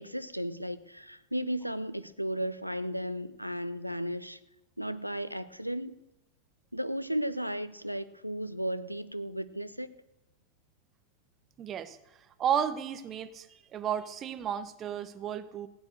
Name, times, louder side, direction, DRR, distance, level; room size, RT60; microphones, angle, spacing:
voice 1, 0.0-4.4 4.8-6.0 6.7-9.9, equal, 90° right, 0.6 m, -35 dB
voice 2, 11.6-12.0 12.4-13.5 13.7-15.7, right 8 dB, 30° right, 0.9 m, -32 dB
16.0 x 8.9 x 6.5 m
figure-of-eight pair, 90°, 0 cm